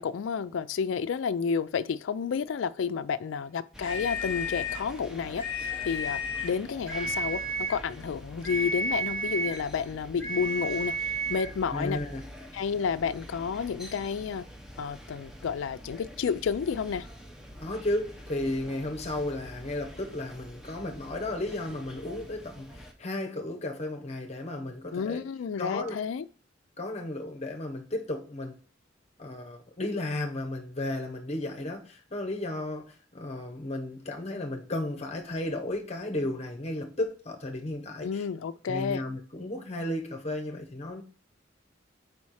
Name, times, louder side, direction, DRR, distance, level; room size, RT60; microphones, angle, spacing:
voice 1, 0.0-12.0 12.5-14.5 14.8-17.1 24.9-26.2 38.0-39.0, left 6 dB, 90° left, 0.4 m, -31 dB
sound 1, 3.7-22.9, equal, 5° right, 0.7 m, -46 dB
sound 2, 3.8-4.9 5.3-6.6 6.9-7.8 8.4-9.7 10.2-11.5, equal, 15° left, 1.7 m, -32 dB
voice 2, 11.7-12.2 17.6-25.2 25.6-25.9 26.8-28.6 29.2-38.2 38.7-41.0, left 1 dB, 35° left, 0.9 m, -34 dB
4.8 x 4.2 x 4.7 m
head